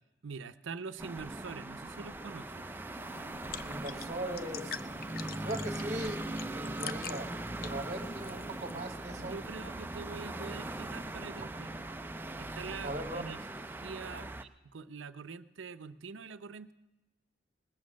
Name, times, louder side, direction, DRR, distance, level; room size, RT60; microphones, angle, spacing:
voice 1, 0.2-2.7 9.1-11.9 12.4-13.4 13.8-14.3 14.6-16.7, right 5 dB, 85° right, 13 dB, 0.6 m, -44 dB
sound 1, 1.0-14.4, right 2 dB, 10° right, 0.4 m, -40 dB
sound 2, 3.0-8.8, left 7 dB, 50° left, 0.5 m, -46 dB
voice 2, 3.7-4.7 5.4-7.3 7.6-9.3 12.8-13.4, right 1 dB, 35° right, 8 dB, 1.2 m, -39 dB
19.5 x 8.5 x 6.3 m, 1.0 s
head